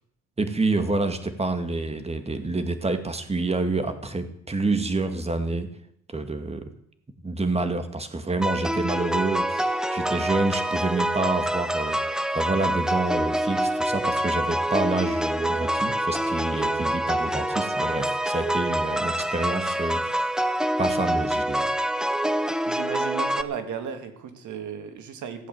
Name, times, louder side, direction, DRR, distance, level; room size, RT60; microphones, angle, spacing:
voice 1, 0.4-5.7 6.1-6.7 7.2-20.3 20.8-21.7, right 2 dB, 20° right, 8 dB, 2.0 m, -28 dB
sound 1, 8.4-23.4, right 1 dB, ahead, 0.8 m, -26 dB
voice 2, 22.7-25.5, right 7 dB, 75° right, 8 dB, 2.1 m, -35 dB
16.0 x 8.3 x 7.8 m, 0.70 s
cardioid pair, 90°, 30 cm